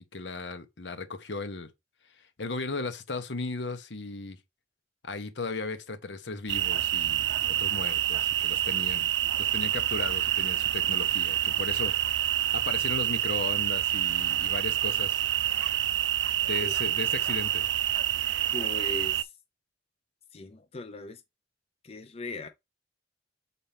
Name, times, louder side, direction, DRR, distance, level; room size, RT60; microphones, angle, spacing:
voice 1, 0.1-1.7 2.4-4.4 5.0-9.1 9.4-12.1 12.5-15.2 16.4-17.7, left 3 dB, 70° left, 1.0 m, -36 dB
sound 1, 6.5-19.2, right 12 dB, 70° right, 0.4 m, -27 dB
voice 2, 18.5-19.3 20.3-21.2 21.8-22.5, left 3 dB, 35° left, 0.6 m, -39 dB
7.0 x 4.2 x 3.4 m
head